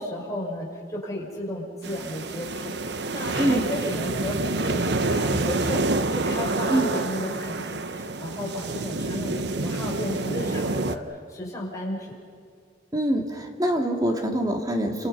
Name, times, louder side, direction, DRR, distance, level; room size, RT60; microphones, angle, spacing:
voice 1, 0.0-12.2, left 1 dB, 20° left, -2 dB, 6.3 m, -34 dB
sound 1, 1.8-11.0, right 2 dB, 65° right, 1.0 m, -27 dB
voice 2, 12.9-15.1, right 1 dB, 20° right, 3 dB, 2.5 m, -24 dB
29.5 x 26.5 x 5.5 m, 2.2 s
head